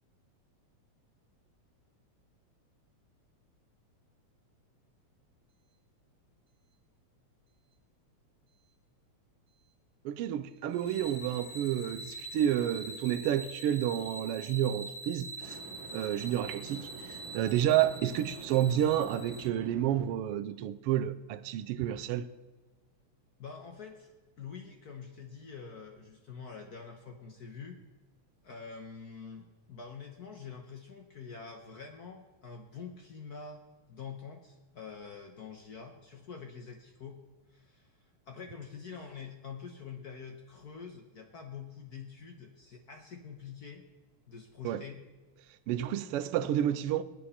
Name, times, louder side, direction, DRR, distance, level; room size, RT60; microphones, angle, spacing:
voice 1, 10.0-15.6 15.9-22.3 44.6-44.8 45.7-47.0, right 11 dB, 85° right, 1.3 m, -30 dB
sound 1, 10.5-10.7 15.4-20.1, right 4 dB, 50° right, 1.8 m, -48 dB
sound 2, 10.7-19.4, right 2 dB, 20° left, 2.0 m, -45 dB
voice 2, 23.4-27.8 28.4-33.6 33.9-37.2 37.5-38.0 38.3-43.8 44.3-45.0, left 6 dB, 70° left, 0.9 m, -46 dB
20.5 x 8.9 x 4.3 m
omnidirectional pair, 3.3 m